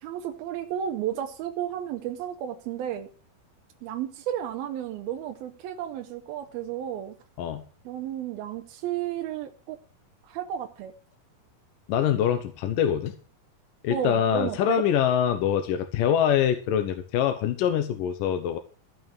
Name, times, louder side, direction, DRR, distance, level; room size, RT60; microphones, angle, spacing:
voice 1, 0.0-3.1 3.8-7.2 7.9-9.8 10.2-10.9 13.9-14.8, right 10 dB, 80° right, 4 dB, 2.7 m, -33 dB
voice 2, 11.9-13.2 13.8-18.6, left 9 dB, 70° left, 7 dB, 2.4 m, -24 dB
15.0 x 6.2 x 7.2 m, 0.38 s
omnidirectional pair, 4.5 m